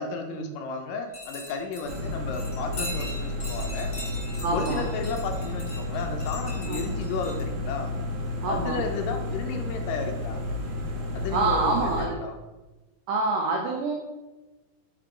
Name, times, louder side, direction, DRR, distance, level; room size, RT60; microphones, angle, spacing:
voice 1, 0.0-3.9 4.5-7.9 8.5-10.4 11.1-11.9 12.2-12.4, left 4 dB, 85° left, 4 dB, 1.9 m, -33 dB
sound 1, 1.1-7.4, left 2 dB, 45° left, 1.0 m, -41 dB
sound 2, 1.8-12.1, left 2 dB, 70° right, 2.1 m, -31 dB
voice 2, 4.4-4.8 6.7-6.8 8.4-8.8 11.3-12.2 13.1-14.0, right 3 dB, 90° right, 0 dB, 1.7 m, -27 dB
5.7 x 3.6 x 4.8 m, 1.1 s
omnidirectional pair, 4.4 m